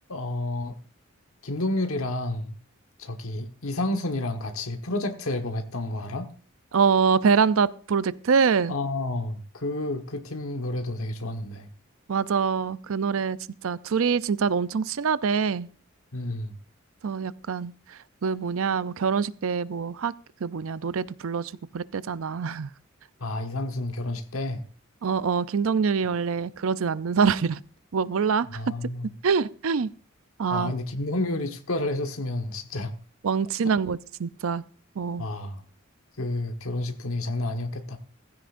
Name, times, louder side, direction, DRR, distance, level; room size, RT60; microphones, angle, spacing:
voice 1, 0.1-0.8 1.4-2.5 3.0-6.3 8.7-11.7 16.1-16.5 23.2-24.6 28.5-29.1 30.5-32.9 35.2-35.6 36.2-38.0, left 2 dB, 85° left, 1.3 m, -30 dB
voice 2, 6.7-8.8 12.1-13.4 13.6-15.7 17.0-17.7 18.2-20.1 20.4-22.7 25.0-27.6 27.9-28.5 29.2-29.9 30.4-30.7 33.2-34.6 35.0-35.3, right 5 dB, 75° right, 0.5 m, -25 dB
16.5 x 15.5 x 2.6 m
head